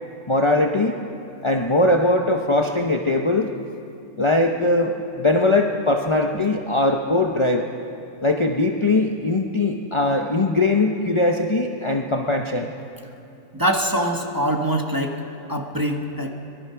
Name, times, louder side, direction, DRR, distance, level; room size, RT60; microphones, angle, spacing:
voice 1, 0.3-1.0 1.4-3.5 4.2-7.7 8.2-12.7, left 2 dB, 25° left, 2 dB, 0.9 m, -20 dB
voice 2, 13.5-15.2 15.5-16.3, right 1 dB, 15° right, 2 dB, 1.5 m, -23 dB
25.0 x 20.0 x 5.9 m, 2.7 s
omnidirectional pair, 1.4 m